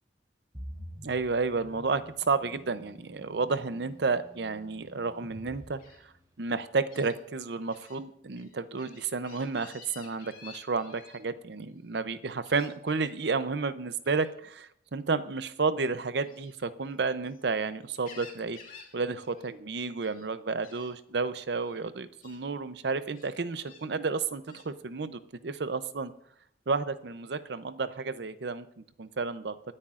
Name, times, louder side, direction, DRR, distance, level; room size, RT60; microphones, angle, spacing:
sound 1, 0.5-6.5, equal, 20° right, 2.5 m, -48 dB
voice 1, 1.0-5.8 6.4-18.6 18.9-26.1 26.7-28.7 29.0-29.6, right 4 dB, 65° right, 13 dB, 0.6 m, -31 dB
Gull seagull, 5.8-6.0 6.9-7.1 7.7-8.0 8.3-11.2 12.4-13.1 14.0-14.3 16.2-17.4 17.8-18.9 19.2-19.5 19.8-20.3 20.6-20.9 21.6-21.8 22.2-22.4 23.1-23.8 24.5-24.7, left 6 dB, 45° left, 2.7 m, -52 dB
22.0 x 9.8 x 2.5 m, 0.71 s
head